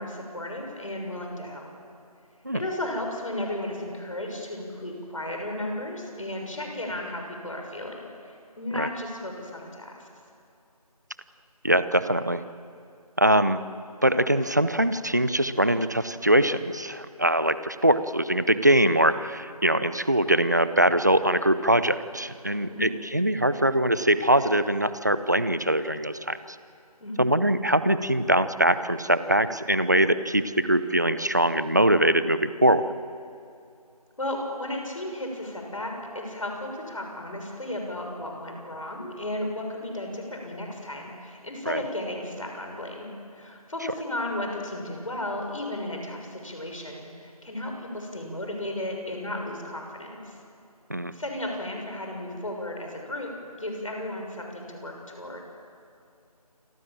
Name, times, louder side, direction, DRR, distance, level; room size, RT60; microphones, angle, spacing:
voice 1, 0.0-1.7 2.5-10.1 22.7-22.9 27.0-27.2 34.2-50.4 51.1-55.4, left 1 dB, 55° left, 2 dB, 6.6 m, -34 dB
voice 2, 11.6-12.4 13.2-13.6 14.0-26.4 27.2-32.9 41.7-41.8 50.9-51.1, right 1 dB, 25° right, 13 dB, 0.7 m, -22 dB
28.5 x 23.0 x 7.6 m, 2.5 s
figure-of-eight pair, 175°, 20 cm